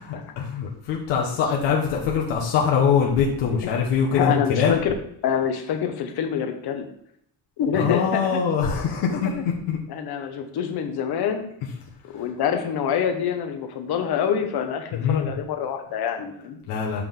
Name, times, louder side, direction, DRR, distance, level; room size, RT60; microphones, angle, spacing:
voice 1, 0.0-4.8 7.7-9.8 12.1-12.2 14.9-15.3 16.7-17.0, left 6 dB, 80° left, -3 dB, 1.6 m, -23 dB
voice 2, 4.1-4.9 5.2-6.9 7.6-8.4 9.9-11.5 12.1-16.6, left 8 dB, 60° left, 5 dB, 1.4 m, -26 dB
7.9 x 5.3 x 3.9 m, 0.71 s
cardioid pair, 115°, 42 cm